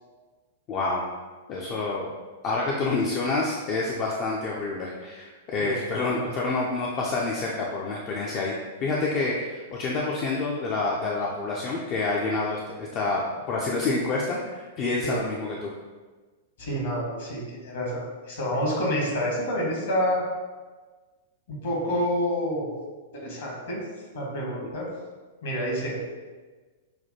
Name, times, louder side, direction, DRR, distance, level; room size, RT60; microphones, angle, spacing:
voice 1, 0.7-1.0 1.5-2.1 2.4-15.7, left 3 dB, 35° left, -3 dB, 0.4 m, -28 dB
voice 2, 16.6-20.2 21.5-22.7 23.1-23.8 24.1-24.9 25.4-26.0, equal, 60° left, -3 dB, 1.3 m, -28 dB
5.8 x 2.2 x 2.8 m, 1.3 s
figure-of-eight pair, 100°, 0 cm